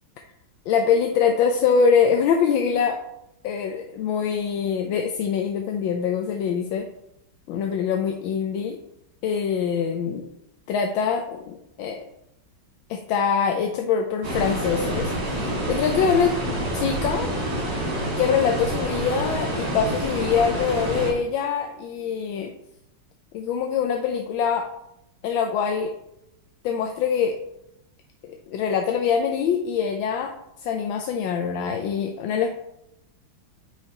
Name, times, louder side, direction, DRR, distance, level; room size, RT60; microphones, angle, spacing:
voice 1, 0.7-3.0 3.4-6.9 7.5-8.8 9.2-10.2 10.7-12.0 12.9-16.3 16.7-17.3 18.2-22.5 23.3-24.7 25.2-25.9 26.6-27.4 28.2-30.3 30.6-32.5, left 6 dB, 85° left, 4 dB, 1.4 m, -24 dB
sound 1, 14.2-21.1, right 1 dB, 75° right, 3.2 m, -27 dB
8.7 x 4.8 x 2.9 m, 0.82 s
omnidirectional pair, 2.1 m